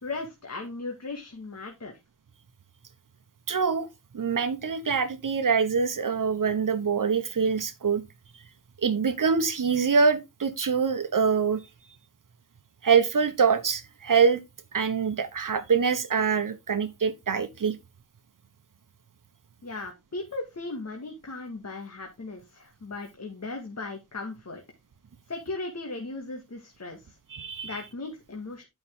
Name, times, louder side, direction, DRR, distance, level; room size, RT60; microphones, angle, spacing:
voice 1, 0.0-1.9 19.6-24.6 25.3-27.2 27.6-28.7, left 3 dB, 55° left, 2.0 m, -37 dB
voice 2, 3.5-3.9 4.1-8.0 8.8-11.6 12.8-14.4 14.7-17.8 27.3-27.8, right 5 dB, 75° right, 1.2 m, -24 dB
11.0 x 5.9 x 3.7 m
wide cardioid pair, 90°, 32 cm